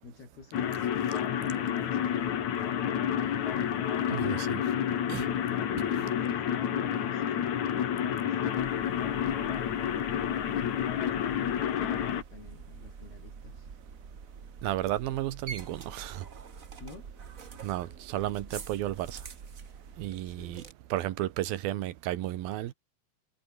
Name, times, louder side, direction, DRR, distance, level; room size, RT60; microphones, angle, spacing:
voice 1, 0.0-2.9 5.5-8.4 9.9-13.7 14.1-14.2 16.8-17.1 20.2-20.7, left 4 dB, 80° left, 9.4 m, -49 dB
sound 1, 0.5-12.2, left 9 dB, 55° left, 2.9 m, -29 dB
voice 2, 4.1-4.6 5.1-5.3 14.6-16.2 17.6-19.2 20.0-20.6 20.9-22.7, right 14 dB, 75° right, 2.9 m, -33 dB
sound 2, 8.6-20.7, right 5 dB, 55° right, 0.9 m, -46 dB
omnidirectional pair, 4.4 m